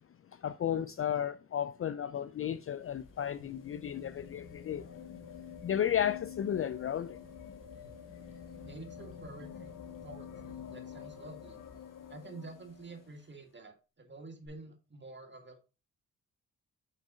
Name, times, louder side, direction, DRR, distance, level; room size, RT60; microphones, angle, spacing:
voice 1, 0.3-5.0 5.6-7.2, left 9 dB, 40° left, 0.4 m, -33 dB
sound 1, 2.3-13.3 14.5-14.6, left 7 dB, 65° left, 1.9 m, -48 dB
voice 2, 8.6-9.7 10.0-11.6 12.1-15.7, right 3 dB, 30° right, 1.9 m, -49 dB
6.3 x 5.3 x 3.7 m
supercardioid pair, 50°, 34 cm